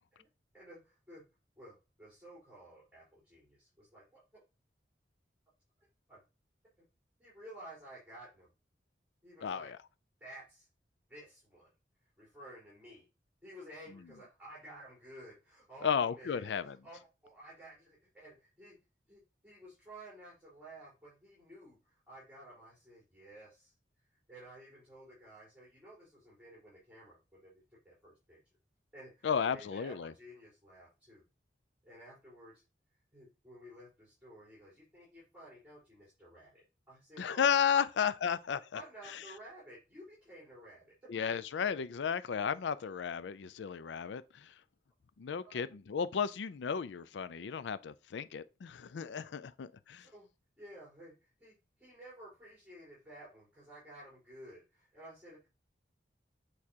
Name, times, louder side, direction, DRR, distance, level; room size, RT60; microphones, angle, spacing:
voice 1, 0.5-1.3 1.6-4.4 6.1-6.2 7.2-8.5 9.2-9.7 10.2-10.7 11.1-11.7 12.2-13.0 13.4-18.8 19.1-23.7 24.3-28.4 28.9-31.2 31.8-32.6 33.1-37.4 37.7-37.9 38.7-41.1 45.4-45.6 49.0-49.1 50.0-50.3 50.6-55.5, right 1 dB, 10° right, 4.3 m, -53 dB
voice 2, 9.4-9.8 15.8-16.8 29.2-30.1 37.2-38.8 39.1-39.2 41.1-44.5 45.2-50.1, left 7 dB, 85° left, 0.4 m, -33 dB
8.5 x 4.7 x 2.9 m
head